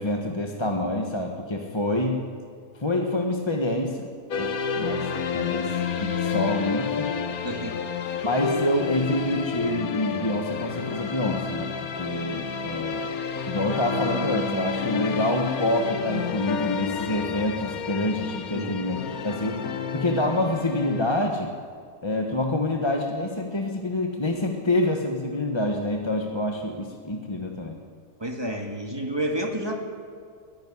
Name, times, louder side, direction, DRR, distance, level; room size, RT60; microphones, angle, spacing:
voice 1, 0.0-2.2 2.7-4.1 4.4-4.5 4.8-5.1 5.3-7.1 8.2-13.1 13.5-19.6 19.9-21.5 22.0-27.8, left 1 dB, 20° left, 2 dB, 1.4 m, -27 dB
sound 1, 4.3-21.2, left 6 dB, 70° left, 1.6 m, -30 dB
voice 2, 7.4-7.8 18.5-18.8 28.2-29.8, right 1 dB, 15° right, 2 dB, 2.2 m, -30 dB
22.0 x 14.5 x 9.9 m, 2.1 s
omnidirectional pair, 1.6 m